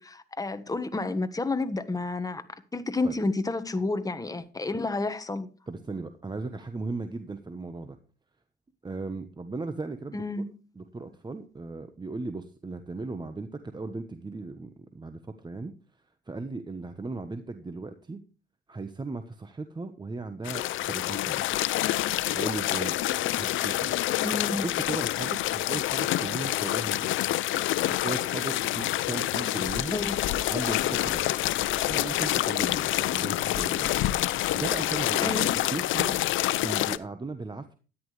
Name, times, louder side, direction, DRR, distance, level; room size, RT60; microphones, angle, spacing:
voice 1, 0.0-2.4 2.7-5.5 10.1-10.4 24.2-24.6 29.9-30.4 35.2-35.6, left 2 dB, 20° left, 1.3 m, -30 dB
voice 2, 5.7-8.0 8.8-10.2 10.8-15.7 16.3-18.2 18.7-21.4 22.3-22.9 23.4-23.9 24.6-27.2 28.0-30.0 30.5-31.4 31.9-36.2 36.6-37.8, right 3 dB, 20° right, 1.2 m, -37 dB
sound 1, 20.5-37.0, left 14 dB, 80° left, 0.6 m, -27 dB
13.0 x 10.5 x 3.3 m
cardioid pair, 90°, 20 cm